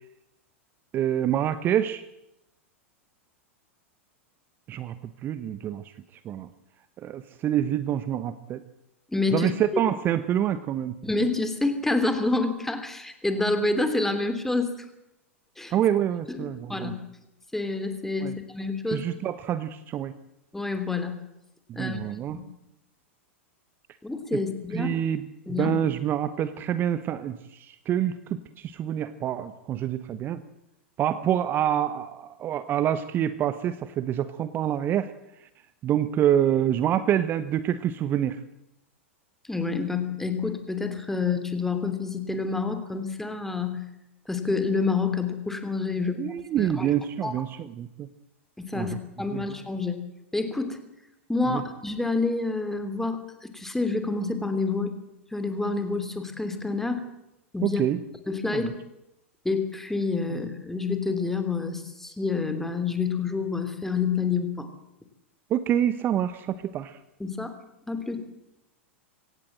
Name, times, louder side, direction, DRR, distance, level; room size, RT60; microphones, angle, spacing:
voice 1, 0.9-2.0 4.7-4.9 5.2-6.5 7.0-8.6 9.3-11.0 15.7-16.9 18.2-18.4 18.9-20.1 21.7-22.4 24.7-30.4 31.0-35.1 35.4-35.5 35.8-38.4 46.0-48.1 48.7-49.0 49.3-49.5 51.4-51.6 57.6-58.0 58.5-58.7 65.5-67.0, right 10 dB, 30° right, 13 dB, 1.0 m, -27 dB
voice 2, 9.1-9.5 11.0-14.7 15.6-15.7 16.3-17.0 17.5-19.1 20.5-21.1 21.7-22.0 22.3-22.4 24.0-25.0 25.5-25.7 39.5-43.8 44.3-46.2 46.6-46.9 47.2-47.4 48.6-50.0 50.3-50.8 51.3-54.9 55.3-57.0 57.5-57.8 58.3-58.7 59.4-64.7 67.2-67.5 67.9-68.2, left 3 dB, 5° left, 8 dB, 3.0 m, -28 dB
24.5 x 17.5 x 7.6 m, 0.85 s
figure-of-eight pair, 90°, 7 cm